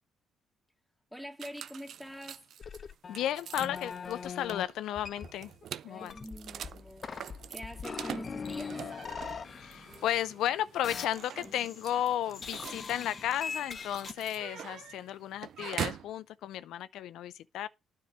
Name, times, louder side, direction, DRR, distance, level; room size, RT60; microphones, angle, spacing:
voice 1, 1.1-2.5 5.9-8.9, equal, 5° right, 2.0 m, -45 dB
sound 1, 1.4-16.1, right 9 dB, 65° right, 0.5 m, -44 dB
sound 2, 2.6-4.6 4.9-5.6 6.0-10.5 10.8-12.0 12.3-14.1, left 5 dB, 45° left, 0.7 m, -42 dB
voice 2, 3.1-5.5 5.8-6.2 9.5-17.7, left 12 dB, 85° left, 0.4 m, -34 dB
9.5 x 4.6 x 6.3 m
cardioid pair, 90°, 0 cm